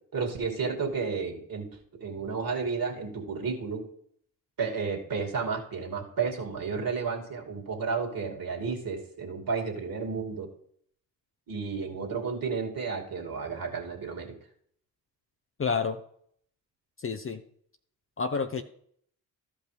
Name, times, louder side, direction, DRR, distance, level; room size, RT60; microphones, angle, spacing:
voice 1, 0.1-3.9 4.6-10.5 11.5-14.4, right 5 dB, 45° right, 1 dB, 2.6 m, -32 dB
voice 2, 15.6-16.0 17.0-17.4 18.2-18.6, left 5 dB, 25° left, 8 dB, 0.7 m, -29 dB
14.5 x 5.4 x 3.3 m, 0.64 s
hypercardioid pair, 45°, 47 cm